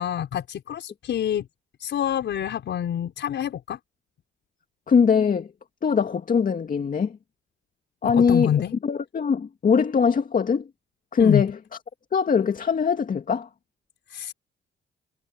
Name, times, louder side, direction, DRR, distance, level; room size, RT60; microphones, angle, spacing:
voice 1, 0.0-1.5 1.8-3.8 8.0-8.7 11.2-11.4 14.1-14.3, left 10 dB, 65° left, 5.4 m, -27 dB
voice 2, 4.9-5.5 5.8-7.2 8.0-8.5 8.8-10.7 11.1-11.5 12.1-13.5, left 6 dB, 45° left, 2.1 m, -21 dB
cardioid pair, 90°, 20 cm